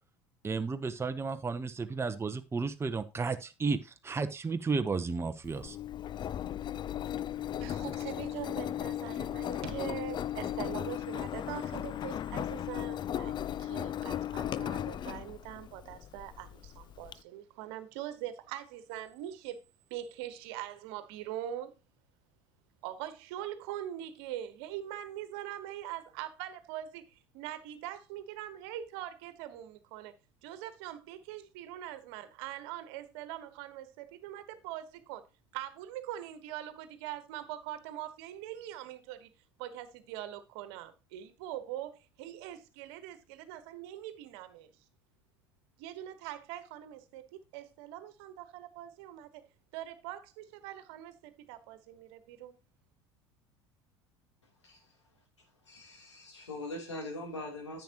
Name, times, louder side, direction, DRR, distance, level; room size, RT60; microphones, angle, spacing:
voice 1, 0.4-5.8, right 4 dB, 15° right, 0.9 m, -33 dB
Engine, 5.4-17.1, left 10 dB, 30° left, 0.4 m, -36 dB
voice 2, 7.6-19.6 19.9-21.7 22.8-27.0 27.3-30.1 30.4-35.2 35.5-39.3 39.6-44.7 45.8-49.4 49.7-52.5, right 12 dB, 65° right, 1.3 m, -42 dB
voice 3, 55.6-57.8, left 1 dB, 85° left, 3.2 m, -41 dB
10.5 x 9.0 x 2.9 m
hypercardioid pair, 70°, 15 cm